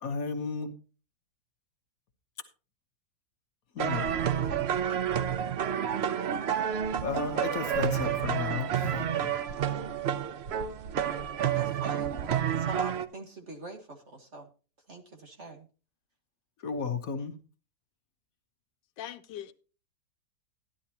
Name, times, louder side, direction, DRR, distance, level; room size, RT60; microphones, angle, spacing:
voice 1, 0.0-0.7 3.7-4.1 7.0-9.3 16.6-17.4, left 5 dB, 55° left, 1.3 m, -34 dB
sound 1, 3.8-13.1, right 9 dB, 85° right, 0.5 m, -29 dB
voice 2, 11.5-12.1 12.5-14.5 14.9-15.7, right 2 dB, 40° right, 1.7 m, -43 dB
voice 3, 19.0-19.5, left 11 dB, 80° left, 1.4 m, -40 dB
12.5 x 11.0 x 2.9 m
omnidirectional pair, 1.9 m